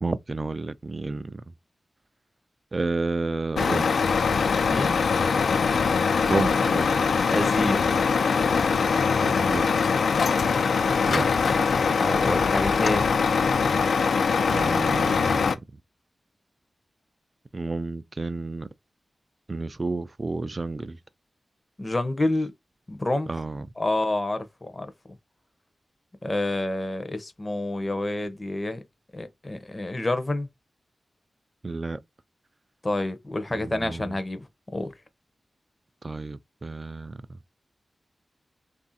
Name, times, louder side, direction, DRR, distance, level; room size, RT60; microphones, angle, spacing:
voice 1, 0.0-1.4 2.7-3.9 6.3-6.9 9.2-9.9 11.1-11.3 14.5-15.5 17.5-18.7 19.5-21.0 23.3-23.6 31.6-32.0 33.6-34.2 36.0-37.2, right 3 dB, 30° right, 0.3 m, -30 dB
Truck, 3.6-15.6, left 5 dB, 85° left, 0.4 m, -22 dB
voice 2, 4.7-5.0 7.3-7.8 12.0-13.2 21.8-22.5 22.9-23.3 23.8-24.9 26.2-28.8 29.1-30.5 32.8-34.9, left 2 dB, 20° left, 0.6 m, -28 dB
3.3 x 2.5 x 4.0 m
wide cardioid pair, 130°, 0 cm